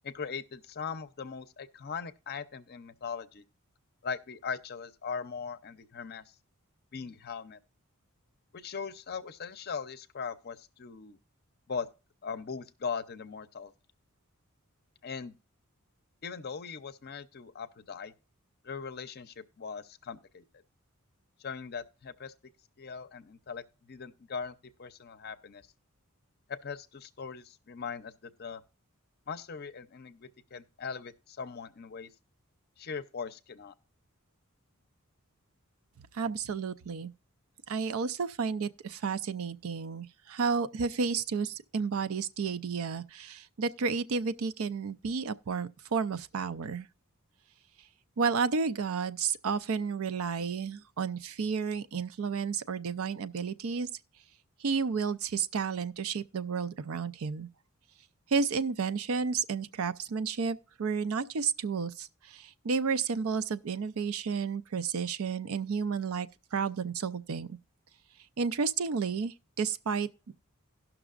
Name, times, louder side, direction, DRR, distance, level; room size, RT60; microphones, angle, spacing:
voice 1, 0.0-3.4 4.0-6.2 6.9-7.6 8.5-11.2 11.7-11.9 12.2-13.7 15.0-15.3 16.2-18.1 18.6-20.4 21.4-22.3 22.8-25.6 26.5-28.6 29.3-32.1 32.8-33.7, left 6 dB, 45° left, 0.6 m, -40 dB
voice 2, 36.1-37.1 37.7-46.9 48.2-53.9 54.6-57.5 58.3-67.6 68.4-70.3, right 5 dB, 70° right, 0.5 m, -32 dB
17.5 x 6.0 x 2.4 m
head